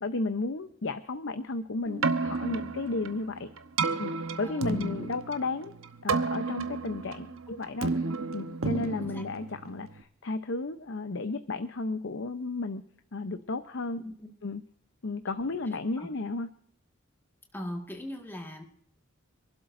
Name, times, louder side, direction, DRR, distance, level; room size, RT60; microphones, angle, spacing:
voice 1, 0.0-3.5 4.0-4.1 4.4-5.8 6.0-7.9 8.3-12.8 13.1-14.0 14.4-14.6 15.0-16.5, left 3 dB, 65° left, 9 dB, 0.8 m, -33 dB
Keyboard (musical), 1.9-10.0, right 4 dB, 85° right, 1.0 m, -32 dB
voice 2, 4.4-5.2 7.3-7.4 9.0-9.2 14.0-14.3 16.0-16.1 17.5-18.6, left 1 dB, 10° left, 2 dB, 1.7 m, -39 dB
26.5 x 12.0 x 2.6 m, 0.65 s
head